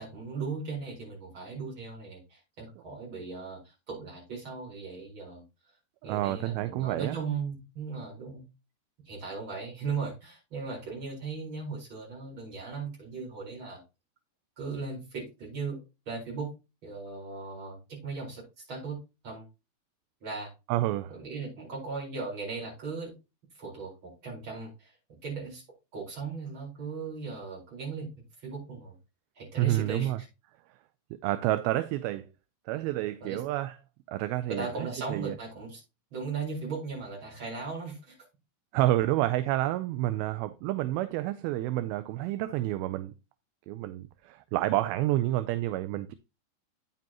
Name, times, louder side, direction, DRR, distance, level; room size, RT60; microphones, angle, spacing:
voice 1, 0.0-5.4 6.0-8.4 9.0-13.8 14.6-16.5 16.8-19.0 19.2-19.4 20.2-20.5 21.1-23.2 23.6-24.9 25.2-25.6 25.9-28.9 29.3-30.1 33.2-33.4 34.5-35.8 36.1-38.2, right 4 dB, 30° right, 5.1 m, -37 dB
voice 2, 6.0-7.2 20.7-21.2 29.6-30.2 31.2-32.3 32.7-33.8 34.1-34.7 35.1-35.4 38.7-43.1 43.7-46.1, right 15 dB, 80° right, 2.3 m, -29 dB
9.3 x 7.6 x 2.9 m
omnidirectional pair, 4.7 m